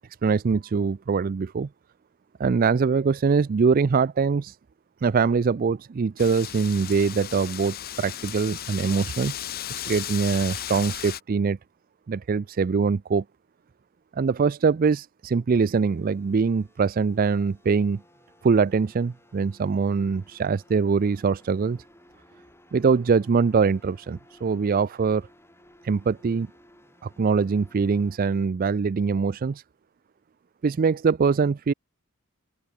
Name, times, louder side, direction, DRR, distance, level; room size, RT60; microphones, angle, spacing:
voice 1, 0.2-1.7 2.4-4.6 5.0-9.3 9.7-11.6 12.1-13.2 14.2-18.0 18.4-21.8 22.7-25.3 25.8-26.5 27.0-29.6 30.6-31.7, right 5 dB, 40° right, 0.4 m, -23 dB
Wind, 6.2-11.2, left 11 dB, 40° left, 0.7 m, -35 dB
sound 1, 15.8-28.2, left 1 dB, 10° left, 3.0 m, -57 dB
open air
head